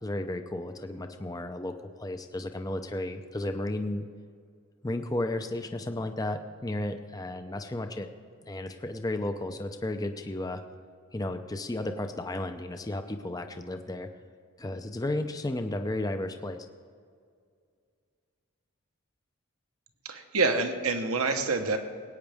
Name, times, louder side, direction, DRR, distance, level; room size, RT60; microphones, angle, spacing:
voice 1, 0.0-4.1 4.8-8.1 8.5-10.6 11.1-14.1 14.6-16.7, left 1 dB, 15° left, 7 dB, 0.6 m, -33 dB
voice 2, 20.0-21.8, right 3 dB, 75° right, 6 dB, 1.2 m, -27 dB
20.5 x 9.3 x 3.5 m, 2.2 s
head